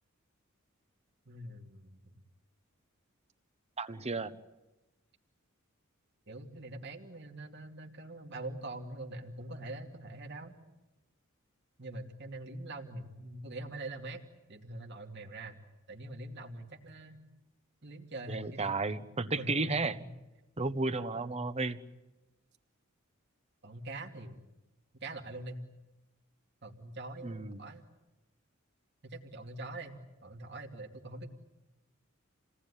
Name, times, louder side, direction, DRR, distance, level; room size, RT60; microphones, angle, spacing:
voice 1, 1.3-2.1 6.3-10.5 11.8-14.2 14.5-15.6 15.9-17.2 17.8-18.8 19.4-19.8 21.3-21.4 23.6-24.4 24.9-25.6 26.6-27.8 29.0-31.3, right 2 dB, 55° right, 2 dB, 2.7 m, -44 dB
voice 2, 3.8-4.4 18.3-19.9 20.6-21.8 27.2-27.6, right 3 dB, 30° right, 12 dB, 1.2 m, -33 dB
28.5 x 18.5 x 10.0 m, 1.0 s
head